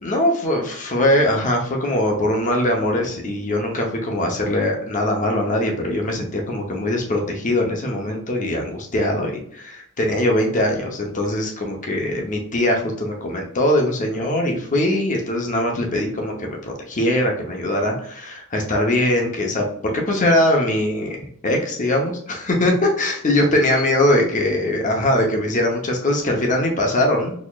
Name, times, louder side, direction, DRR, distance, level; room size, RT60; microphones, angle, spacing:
voice 1, 0.0-27.3, left 1 dB, 35° left, 1 dB, 0.7 m, -21 dB
4.1 x 2.9 x 2.3 m, 0.65 s
head